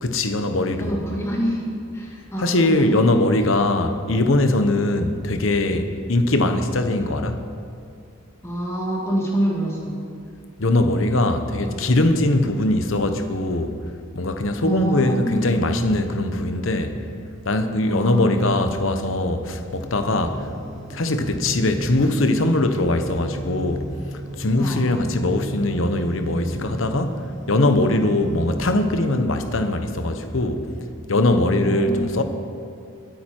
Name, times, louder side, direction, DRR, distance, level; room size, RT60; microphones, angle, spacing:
voice 1, 0.0-0.9 2.4-7.4 10.6-13.8 14.1-17.0 17.4-20.5 20.9-23.9 24.4-27.2 27.5-30.6 31.1-32.2, left 2 dB, 70° left, 1.0 m, -21 dB
voice 2, 0.8-1.6 1.9-3.1 8.4-10.0 11.5-11.9 14.6-15.7 17.8-18.7 24.6-25.0 31.5-32.2, right 1 dB, 15° left, 2.2 m, -27 dB
sound 1, 19.7-28.5, right 1 dB, 35° right, 2.3 m, -34 dB
21.5 x 9.2 x 4.5 m
head